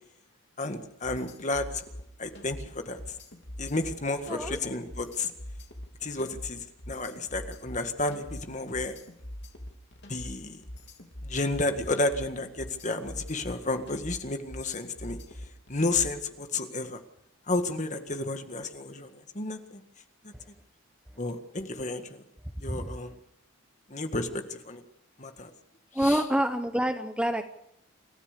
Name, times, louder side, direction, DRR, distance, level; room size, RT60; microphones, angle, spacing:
voice 1, 0.6-1.8 2.2-3.0 3.6-5.3 6.0-6.6 6.9-8.9 10.1-10.6 11.2-15.2 15.7-17.0 17.5-19.1 19.4-19.8 21.2-22.2 22.6-23.1 23.9-24.8 25.2-25.5 26.0-26.2, left 2 dB, 35° left, 7 dB, 1.8 m, -31 dB
sound 1, 1.0-16.3, left 1 dB, 55° left, 3.1 m, -43 dB
voice 2, 4.3-4.6 22.7-22.8 26.0-27.5, right 1 dB, 5° right, 8 dB, 0.8 m, -27 dB
27.5 x 14.5 x 6.8 m, 0.79 s
head